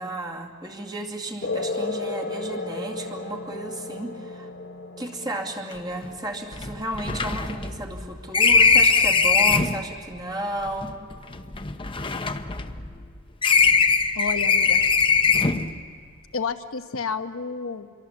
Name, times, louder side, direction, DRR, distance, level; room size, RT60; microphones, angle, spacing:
voice 1, 0.0-4.5 5.0-10.9, right 1 dB, 20° right, 1 dB, 2.4 m, -33 dB
sound 1, 1.4-8.4, left 3 dB, 55° left, 1.1 m, -34 dB
sound 2, 5.7-5.8 6.0-6.1 6.5-9.8 10.7-13.1 13.4-15.7, left 5 dB, 25° left, 0.9 m, -21 dB
voice 2, 14.1-14.8 16.3-17.9, left 5 dB, 75° left, 8 dB, 1.1 m, -30 dB
27.5 x 23.0 x 7.3 m, 2.1 s
head